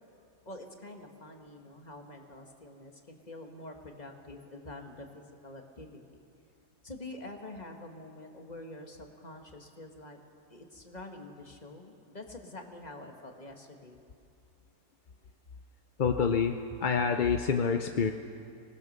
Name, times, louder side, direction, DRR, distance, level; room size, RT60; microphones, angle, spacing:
voice 1, 0.5-6.2 6.8-10.2 10.5-14.0, left 2 dB, 30° left, 3 dB, 1.8 m, -46 dB
voice 2, 16.0-18.1, left 6 dB, 45° left, 6 dB, 0.7 m, -27 dB
24.5 x 19.5 x 6.7 m, 2.5 s
omnidirectional pair, 1.5 m